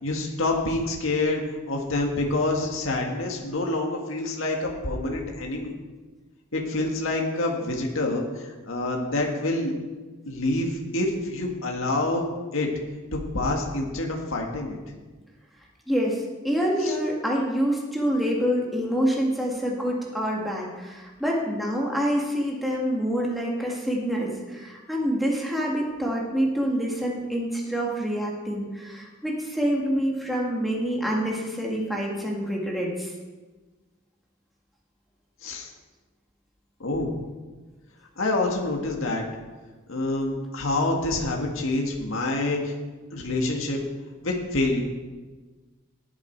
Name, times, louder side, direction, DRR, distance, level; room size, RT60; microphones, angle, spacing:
voice 1, 0.0-1.4 1.7-5.7 6.5-9.7 10.3-12.3 12.5-12.7 13.1-14.8 16.8-16.9 35.4-35.7 36.8-37.1 38.2-39.2 39.9-42.8 43.1-43.8 44.2-44.8, left 2 dB, 80° left, 0 dB, 1.8 m, -27 dB
voice 2, 15.9-33.1, equal, ahead, -3 dB, 2.0 m, -26 dB
19.5 x 7.3 x 4.6 m, 1.3 s
head